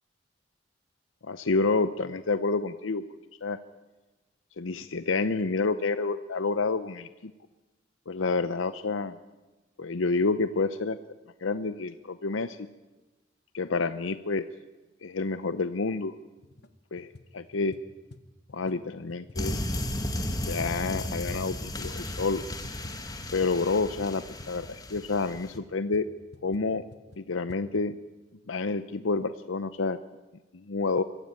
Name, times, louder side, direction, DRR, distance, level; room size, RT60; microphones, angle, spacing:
voice 1, 1.2-3.0 3.4-3.6 4.6-7.3 8.1-9.2 9.8-11.0 11.4-12.7 13.5-14.4 15.0-16.1 16.9-17.1 17.3-17.7 18.5-19.5 20.5-22.4 23.3-26.1 26.4-26.9 27.2-28.0 28.5-30.0 30.5-31.0, left 3 dB, 90° left, 12 dB, 0.7 m, -28 dB
sound 1, 16.4-16.7 17.0-22.0 22.2-27.6, left 2 dB, 60° left, 1.1 m, -51 dB
sound 2, 19.4-25.6, left 1 dB, 20° left, 1.7 m, -34 dB
23.5 x 15.0 x 8.8 m, 1.2 s
head